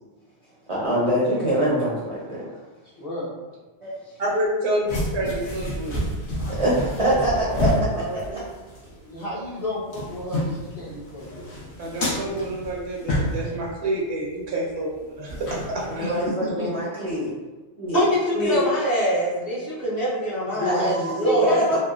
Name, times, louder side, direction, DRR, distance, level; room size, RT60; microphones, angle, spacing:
voice 1, 0.7-2.6 3.8-4.1 6.5-7.7 8.3-8.4 15.9-17.3 17.8-18.0 18.3-18.6 20.7-21.8, right 1 dB, 45° right, -7 dB, 0.4 m, -24 dB
voice 2, 3.0-3.3 7.0-7.2 7.5-8.4 9.0-11.5 16.0-16.7 20.5-21.8, left 1 dB, 45° left, -7 dB, 0.6 m, -31 dB
voice 3, 4.2-6.0 11.8-16.1, right 1 dB, 80° right, -3 dB, 0.8 m, -28 dB
sound 1, 4.9-8.9 9.2-9.3 9.7-13.7 15.3-16.3, equal, 80° left, 1.0 m, -29 dB
voice 4, 17.9-21.6, equal, 60° left, -10 dB, 1.0 m, -24 dB
2.9 x 2.0 x 2.3 m, 1.2 s
omnidirectional pair, 1.1 m